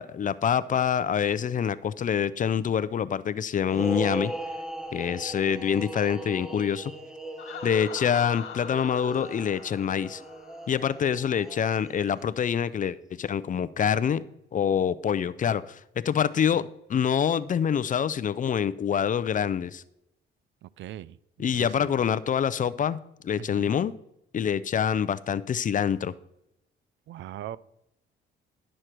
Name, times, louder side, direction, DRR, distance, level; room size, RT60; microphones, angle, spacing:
voice 1, 0.0-4.3 4.9-6.9 7.6-10.2 10.7-14.2 14.5-19.8 21.4-23.0 23.2-23.9 24.3-26.1, left 8 dB, 40° left, 16 dB, 0.5 m, -26 dB
sound 1, 3.6-12.2, right 1 dB, 5° right, 0.8 m, -38 dB
Laughter, 7.4-11.1, left 7 dB, 80° left, 1.7 m, -42 dB
voice 2, 20.6-21.9 23.4-23.7 27.1-27.6, right 12 dB, 70° right, 19 dB, 0.4 m, -41 dB
11.5 x 6.4 x 4.5 m, 0.83 s
cardioid pair, 90°, 20 cm